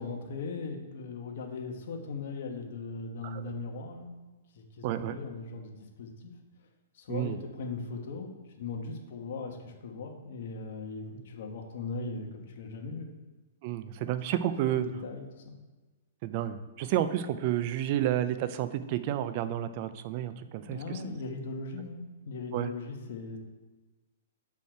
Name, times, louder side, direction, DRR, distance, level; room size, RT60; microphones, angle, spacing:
voice 1, 0.0-4.1 4.5-6.3 6.9-8.3 8.6-13.1 15.0-15.5 20.6-23.4, left 4 dB, 60° left, 2 dB, 1.2 m, -39 dB
voice 2, 4.8-5.2 7.1-7.4 13.6-14.9 16.2-21.2 22.5-22.7, right 12 dB, 45° right, 12 dB, 0.5 m, -31 dB
6.4 x 5.6 x 4.4 m, 1.2 s
hypercardioid pair, 145°, 0 cm